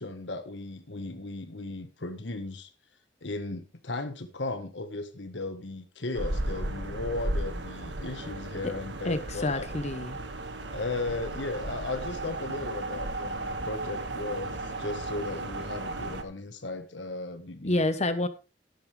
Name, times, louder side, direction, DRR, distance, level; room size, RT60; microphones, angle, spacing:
voice 1, 0.0-2.7 3.2-9.7 10.7-17.8, left 2 dB, 75° left, 8 dB, 1.5 m, -36 dB
sound 1, 6.1-16.2, right 2 dB, 70° right, 1.8 m, -35 dB
voice 2, 9.0-10.2 17.6-18.3, left 2 dB, 40° left, 11 dB, 1.1 m, -28 dB
12.5 x 11.5 x 3.4 m, 0.30 s
head